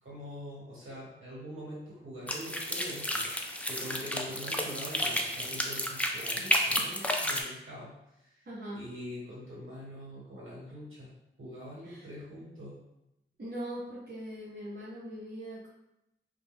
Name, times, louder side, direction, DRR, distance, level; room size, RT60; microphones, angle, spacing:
voice 1, 0.0-3.3 3.6-8.5 8.7-11.1 11.4-12.8, equal, 85° right, -7 dB, 1.2 m, -44 dB
sound 1, 2.3-7.4, equal, 5° left, 0.3 m, -31 dB
voice 2, 8.5-8.8 11.8-12.0 13.4-15.7, equal, 60° right, -9 dB, 0.7 m, -41 dB
2.3 x 2.2 x 3.3 m, 0.87 s
wide cardioid pair, 55°, 20 cm